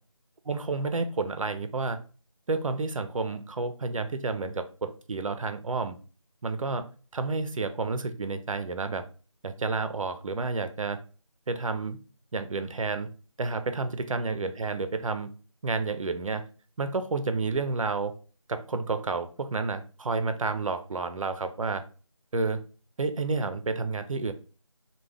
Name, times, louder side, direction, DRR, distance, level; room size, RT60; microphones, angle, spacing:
voice 1, 0.5-2.0 2.5-6.0 6.4-6.9 7.1-9.0 9.4-11.0 11.5-12.0 12.3-13.1 13.4-15.3 15.6-16.5 16.8-18.1 18.5-21.8 22.3-22.6 23.0-24.3, right 3 dB, 75° right, 9 dB, 0.4 m, -30 dB
2.3 x 2.1 x 3.2 m, 0.37 s
figure-of-eight pair, 175°, 17 cm